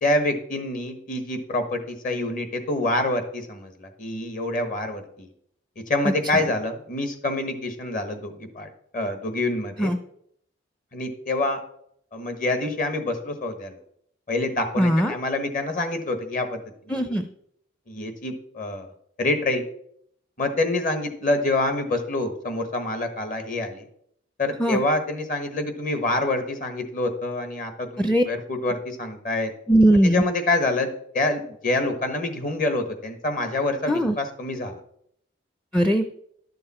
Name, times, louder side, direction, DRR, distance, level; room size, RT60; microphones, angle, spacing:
voice 1, 0.0-5.3 5.8-9.9 10.9-11.6 12.1-13.8 14.3-16.6 16.9-17.2 17.9-18.9 19.2-19.6 20.4-23.8 24.4-29.5 30.0-34.8, left 2 dB, 45° left, 7 dB, 1.4 m, -26 dB
voice 2, 14.8-15.1 16.9-17.2 24.6-24.8 28.0-28.2 29.7-30.2 33.9-34.1 35.7-36.1, right 1 dB, 5° left, 8 dB, 0.5 m, -19 dB
11.5 x 6.8 x 4.3 m, 0.69 s
head